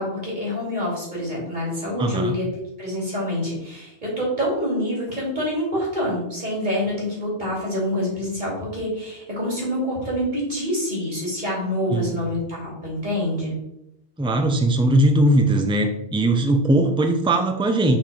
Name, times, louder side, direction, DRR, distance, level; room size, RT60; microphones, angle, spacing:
voice 1, 0.0-2.5 2.8-13.5, left 1 dB, 40° right, -5 dB, 3.1 m, -26 dB
voice 2, 2.0-2.3 11.9-12.2 14.2-18.0, right 1 dB, 5° right, 4 dB, 0.5 m, -19 dB
6.0 x 4.3 x 5.0 m, 0.81 s
omnidirectional pair, 1.2 m